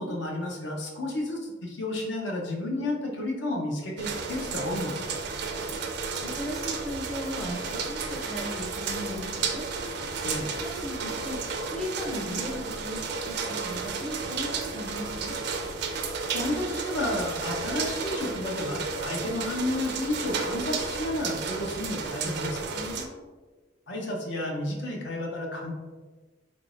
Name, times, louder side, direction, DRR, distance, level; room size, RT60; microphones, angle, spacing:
voice 1, 0.0-5.0 10.2-10.6 16.3-22.7 23.9-25.7, left 1 dB, 65° left, 0 dB, 0.7 m, -31 dB
sound 1, 4.0-23.1, right 4 dB, 60° right, 0.4 m, -33 dB
voice 2, 6.2-9.7 10.6-11.4 11.7-15.4 22.7-23.3, equal, ahead, -2 dB, 0.5 m, -37 dB
3.7 x 3.6 x 2.4 m, 1.3 s
head